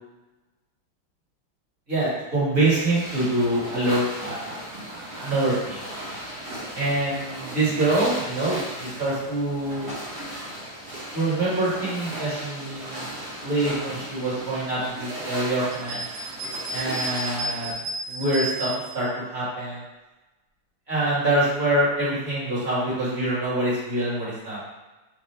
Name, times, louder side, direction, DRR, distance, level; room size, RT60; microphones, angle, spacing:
voice 1, 1.9-4.5 4.9-5.8 6.7-9.9 11.1-13.1 13.4-16.0 16.7-17.8 18.1-19.8 20.9-24.6, right 1 dB, 35° right, -9 dB, 1.7 m, -25 dB
sound 1, 2.6-17.7, right 1 dB, 55° right, 2.0 m, -36 dB
sound 2, 15.7-19.0, right 1 dB, 80° right, 1.5 m, -32 dB
4.3 x 2.4 x 3.2 m, 1.1 s
omnidirectional pair, 2.2 m